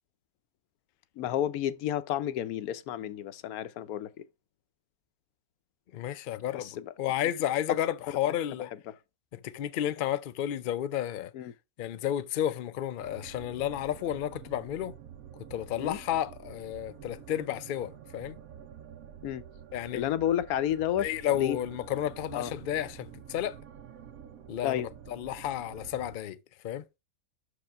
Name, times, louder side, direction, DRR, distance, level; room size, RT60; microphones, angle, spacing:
voice 1, 1.2-4.2 6.5-6.9 11.3-11.5 15.8-16.0 19.2-19.4 19.9-21.1 21.3-21.6 22.3-22.5 24.6-24.9, left 11 dB, 90° left, 1.1 m, -31 dB
voice 2, 5.9-8.7 9.3-11.3 11.8-14.9 15.4-18.4 19.7-20.1 21.0-23.6 24.5-26.4 26.6-26.9, left 11 dB, 65° left, 0.5 m, -32 dB
sound 1, 13.0-26.2, right 9 dB, 75° right, 1.2 m, -48 dB
6.2 x 5.0 x 4.5 m
omnidirectional pair, 1.5 m